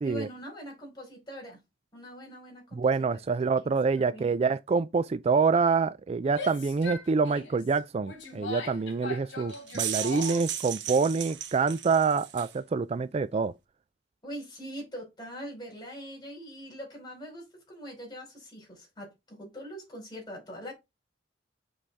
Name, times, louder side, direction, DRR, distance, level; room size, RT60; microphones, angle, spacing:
voice 1, 0.0-1.6 1.9-3.1 3.6-4.3 14.2-20.7, equal, 25° left, 5.0 m, -43 dB
voice 2, 2.7-13.5, right 4 dB, 35° right, 0.3 m, -26 dB
Female speech woman speaking / Yell, 6.2-10.6, left 3 dB, 75° left, 3.2 m, -40 dB
sound 1, 9.5-12.6, right 10 dB, 70° right, 1.1 m, -35 dB
7.7 x 4.8 x 3.4 m
head